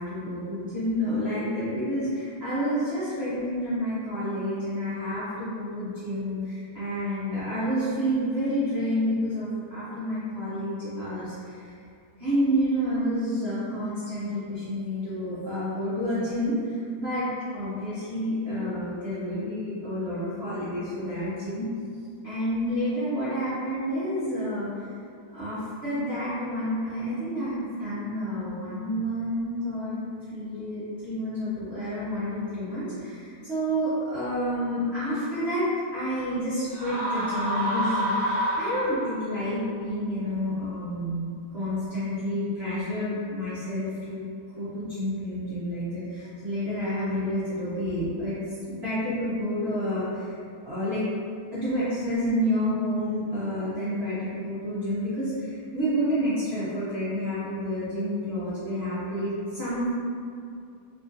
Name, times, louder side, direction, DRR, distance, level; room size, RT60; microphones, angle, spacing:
voice 1, 0.0-11.7 12.2-17.3 17.5-21.7 22.2-24.7 25.3-29.9 30.3-44.3 44.6-48.3 48.7-50.3 50.6-51.0 51.5-59.9, equal, 80° right, -13 dB, 0.5 m, -29 dB
sound 1, 36.7-39.3, right 1 dB, 45° left, 0.7 m, -28 dB
3.5 x 2.4 x 2.6 m, 2.4 s
omnidirectional pair, 2.3 m